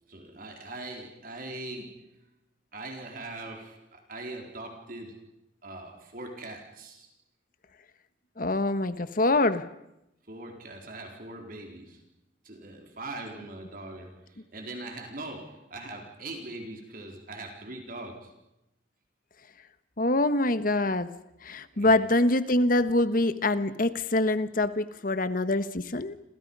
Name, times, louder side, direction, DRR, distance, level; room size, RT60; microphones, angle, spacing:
voice 1, 0.1-2.1 2.7-5.3 5.6-7.1 10.3-12.0 12.4-18.4 21.7-22.0, right 2 dB, 50° right, 2 dB, 4.3 m, -41 dB
voice 2, 8.4-9.7 20.0-21.1 21.4-26.1, left 2 dB, 50° left, 12 dB, 1.4 m, -25 dB
29.5 x 27.0 x 5.6 m, 0.86 s
head